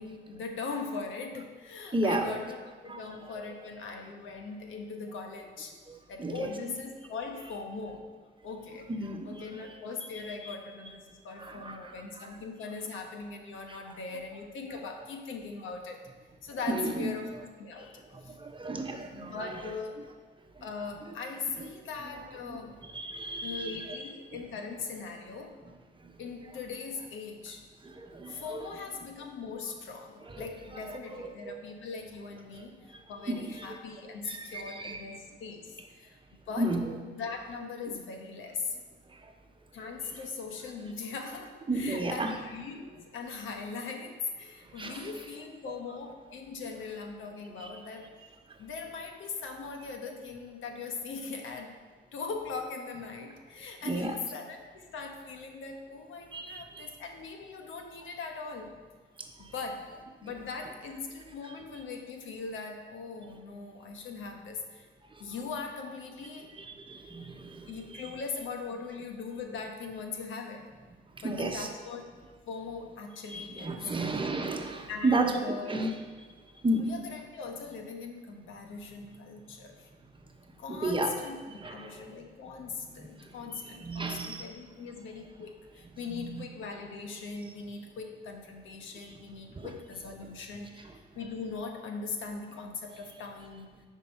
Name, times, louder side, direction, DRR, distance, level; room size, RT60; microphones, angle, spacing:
voice 1, 0.0-5.8 6.1-8.1 8.4-16.0 16.4-17.3 17.6-18.3 19.1-20.1 20.6-22.8 23.4-25.6 26.2-27.6 28.3-36.2 36.5-36.8 37.1-38.8 39.7-48.1 48.6-51.8 52.1-58.8 59.4-64.9 65.2-66.6 67.7-70.8 71.2-72.0 72.5-73.9 74.9-75.8 76.8-79.9 80.6-93.9, left 4 dB, 80° left, 3 dB, 1.2 m, -40 dB
voice 2, 1.9-2.3 2.8-3.0 6.2-6.5 8.9-9.3 9.6-9.7 10.1-10.2 11.4-12.3 16.7-17.1 18.1-19.5 22.4-22.6 22.9-24.0 26.0-26.1 27.8-28.7 30.3-30.5 30.9-31.6 33.3-33.6 34.2-35.0 36.6-36.9 39.1-39.2 41.7-42.3 44.7-45.0 53.8-54.2 56.3-56.9 59.2-59.5 65.2-65.3 66.6-67.7 71.2-71.7 73.3-75.4 75.7-75.9 76.6-76.9 79.9-80.2 80.7-81.2 81.5-82.0 82.8-84.5 86.1-86.4 89.0-89.1 89.5-89.7, right 2 dB, 25° right, 4 dB, 1.0 m, -33 dB
9.9 x 5.2 x 4.4 m, 1.4 s
cardioid pair, 90°, 20 cm